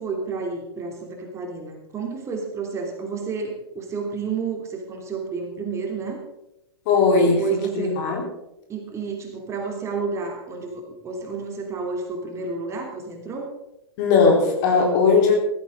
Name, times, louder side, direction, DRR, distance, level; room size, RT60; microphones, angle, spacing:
voice 1, 0.0-6.2 7.2-7.9 8.7-13.5, right 5 dB, 20° right, 2 dB, 3.0 m, -30 dB
voice 2, 6.9-7.4 7.7-8.2 14.0-15.4, left 4 dB, 45° left, 1 dB, 4.1 m, -18 dB
15.5 x 15.0 x 3.9 m, 0.87 s
figure-of-eight pair, 100°, 13 cm